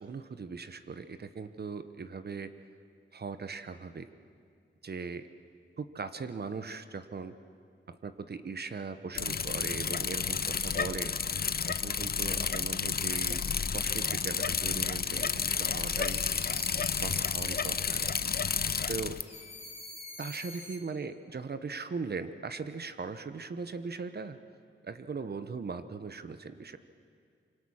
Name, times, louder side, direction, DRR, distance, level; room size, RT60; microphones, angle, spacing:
voice 1, 0.0-2.5 3.1-4.1 4.8-5.3 5.8-7.4 7.9-11.1 11.7-13.4 13.7-16.2 17.0-18.3 18.9-19.2 20.2-24.4 24.8-26.8, right 4 dB, 55° right, 11 dB, 1.0 m, -39 dB
Bicycle, 9.1-19.2, left 6 dB, 50° left, 0.7 m, -31 dB
sound 1, 15.6-18.9 19.2-20.8, left 2 dB, 30° left, 3.1 m, -47 dB
25.5 x 24.0 x 6.4 m, 2.2 s
wide cardioid pair, 80°, 20 cm